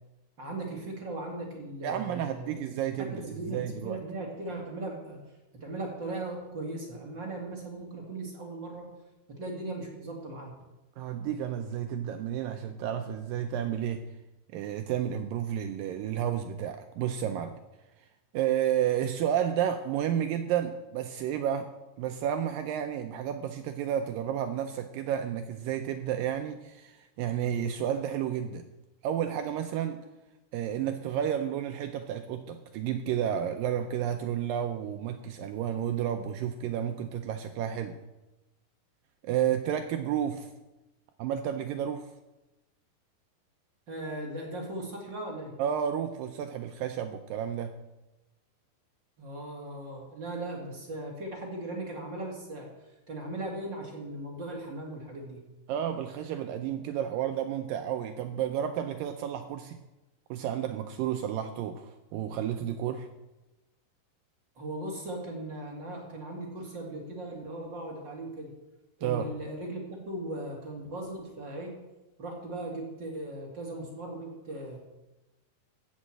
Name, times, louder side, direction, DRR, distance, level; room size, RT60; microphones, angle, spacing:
voice 1, 0.4-2.5 3.0-5.2 5.6-8.9 9.3-10.5 43.9-45.5 49.2-52.7 53.1-55.4 64.6-68.5 69.0-71.7 72.2-74.8, right 2 dB, 35° right, -1 dB, 2.1 m, -38 dB
voice 2, 1.8-4.0 11.0-14.0 14.5-17.6 18.3-21.7 22.0-28.7 29.0-30.0 30.5-38.0 39.2-40.5 41.2-42.1 45.6-47.7 55.7-59.8 60.3-63.1 69.0-69.3, right 9 dB, 85° right, 7 dB, 2.0 m, -31 dB
15.0 x 6.3 x 7.7 m, 1.0 s
omnidirectional pair, 4.7 m